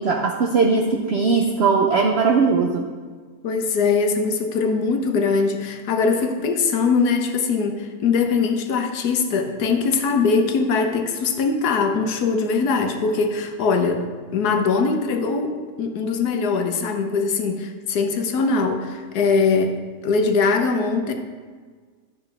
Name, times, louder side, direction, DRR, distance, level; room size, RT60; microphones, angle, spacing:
voice 1, 0.0-2.9, right 4 dB, 60° right, 2 dB, 0.7 m, -19 dB
voice 2, 3.4-14.1 14.3-21.1, left 4 dB, 75° left, 5 dB, 1.3 m, -21 dB
10.5 x 7.0 x 3.3 m, 1.5 s
omnidirectional pair, 1.7 m